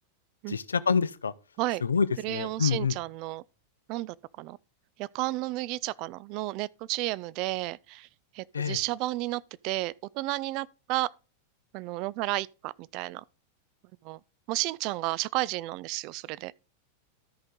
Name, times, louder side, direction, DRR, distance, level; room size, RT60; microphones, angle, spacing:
voice 1, 0.5-1.3 1.8-3.0 8.5-8.8, left 6 dB, 70° left, 0.4 m, -27 dB
voice 2, 2.2-3.4 3.9-4.6 5.0-8.1 8.3-11.1 11.7-13.2 14.0-14.2 14.5-16.5, right 19 dB, 40° right, 0.4 m, -32 dB
13.0 x 5.1 x 3.7 m
figure-of-eight pair, 90°, 0 cm